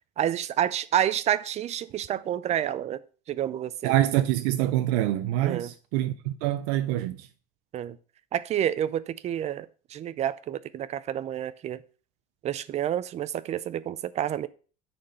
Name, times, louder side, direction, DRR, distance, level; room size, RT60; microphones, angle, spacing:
voice 1, 0.2-3.0 3.3-3.9 5.4-5.7 7.7-8.0 8.3-11.8 12.4-14.5, right 10 dB, 35° right, 0.5 m, -29 dB
voice 2, 3.8-7.3, right 14 dB, 90° right, 0.6 m, -25 dB
9.6 x 4.3 x 5.5 m
cardioid pair, 135°, 19 cm